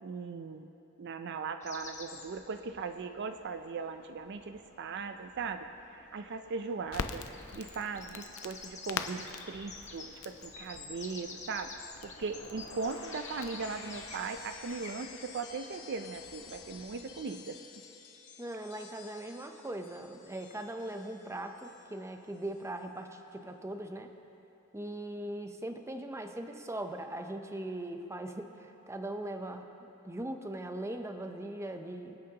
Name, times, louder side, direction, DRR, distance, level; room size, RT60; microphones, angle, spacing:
voice 1, 0.0-0.7 1.0-5.7 6.1-7.2 7.5-11.7 12.0-17.6, right 4 dB, 55° right, 8 dB, 0.4 m, -39 dB
sound 1, 1.6-17.4, left 4 dB, 35° left, 1.2 m, -50 dB
Crackle, 6.9-14.8, left 5 dB, 80° left, 0.6 m, -44 dB
sound 2, 11.9-22.1 22.3-22.8, left 5 dB, 65° left, 1.4 m, -51 dB
voice 2, 18.4-24.1 24.7-32.2, right 1 dB, 15° right, 5 dB, 0.6 m, -40 dB
26.5 x 8.9 x 2.9 m, 2.9 s
head